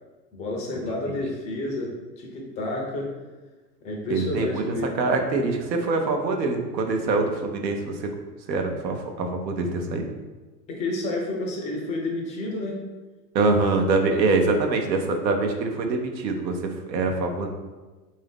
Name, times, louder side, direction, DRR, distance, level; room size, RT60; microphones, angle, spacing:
voice 1, 0.3-3.1 3.8-4.9 10.7-12.8 14.1-14.2, left 2 dB, 15° left, 0 dB, 0.3 m, -30 dB
voice 2, 4.1-8.1 8.5-10.0 13.3-17.5, right 3 dB, 85° right, 4 dB, 0.8 m, -24 dB
3.7 x 2.7 x 3.5 m, 1.2 s
hypercardioid pair, 105°, 49 cm